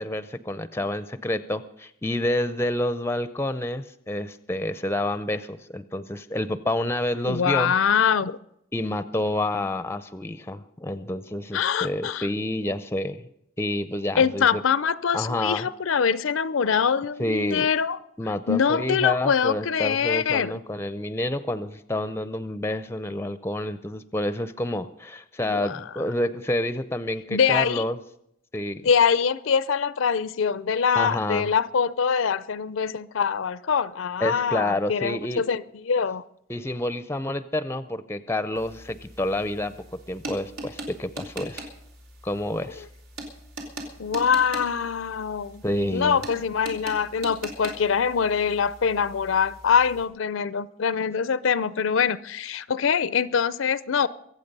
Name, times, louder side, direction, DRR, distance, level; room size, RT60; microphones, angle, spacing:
voice 1, 0.0-7.7 8.7-13.3 13.6-14.6 15.1-15.7 17.2-17.7 18.2-28.0 28.5-28.8 30.9-31.5 34.2-35.4 36.5-39.8 40.1-41.7 42.2-42.9 45.6-46.2, left 1 dB, 10° left, 13 dB, 0.5 m, -28 dB
voice 2, 7.3-8.4 11.5-12.3 14.2-18.0 18.5-20.5 25.5-25.8 27.3-27.8 28.8-36.2 44.0-45.6 45.9-54.1, left 6 dB, 75° left, 17 dB, 0.5 m, -24 dB
sound 1, 38.5-50.1, right 1 dB, 85° right, 3.2 m, -41 dB
23.5 x 8.5 x 5.4 m, 0.75 s
head